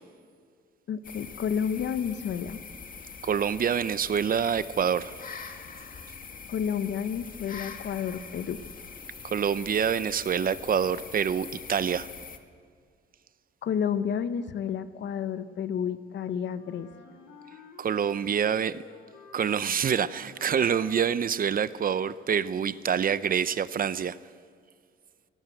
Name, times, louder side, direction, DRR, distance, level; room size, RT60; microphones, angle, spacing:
voice 1, 0.9-2.6 6.5-8.6 13.6-16.9, left 8 dB, 65° left, 1.1 m, -30 dB
sound 1, 1.0-12.4, left 5 dB, 45° left, 2.0 m, -43 dB
voice 2, 3.2-5.1 9.2-12.1 17.8-18.8 19.3-24.2, right 7 dB, 45° right, 0.8 m, -26 dB
Wind instrument woodwind instrument, 16.5-21.6, left 5 dB, 85° left, 3.9 m, -52 dB
23.5 x 17.5 x 7.9 m
cardioid pair, 90°, 20 cm